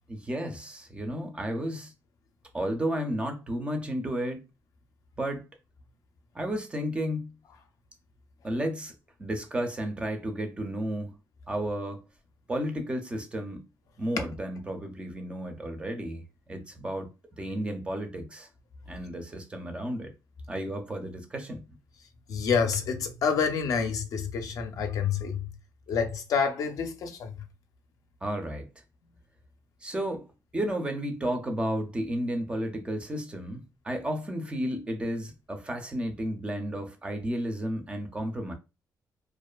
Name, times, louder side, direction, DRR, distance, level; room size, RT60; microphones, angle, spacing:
voice 1, 0.1-1.9 2.5-4.4 5.2-5.5 6.3-7.3 8.4-8.9 9.2-11.1 11.5-12.0 12.5-13.6 14.0-16.2 16.5-17.1 17.4-18.5 18.9-20.1 20.5-21.6 28.2-28.7 29.8-30.3 30.5-38.5, right 1 dB, 15° right, 0.4 m, -32 dB
voice 2, 22.3-25.5 25.9-27.3, left 6 dB, 60° left, 0.4 m, -28 dB
2.4 x 2.3 x 2.2 m
cardioid pair, 160°, 7 cm